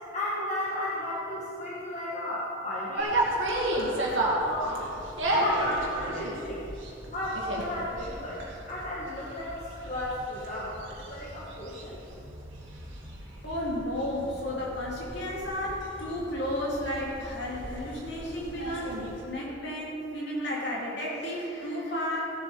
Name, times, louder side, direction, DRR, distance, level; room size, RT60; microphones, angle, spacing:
voice 1, 0.1-4.2 4.4-4.8 5.3-6.6 7.1-11.9, left 1 dB, 35° left, -7 dB, 1.6 m, -34 dB
sound 1, 3.0-19.2, right 1 dB, 75° right, 2.3 m, -34 dB
voice 2, 13.4-19.0 19.3-22.2, left 1 dB, 60° left, -4 dB, 2.9 m, -33 dB
16.0 x 7.6 x 5.1 m, 2.8 s
head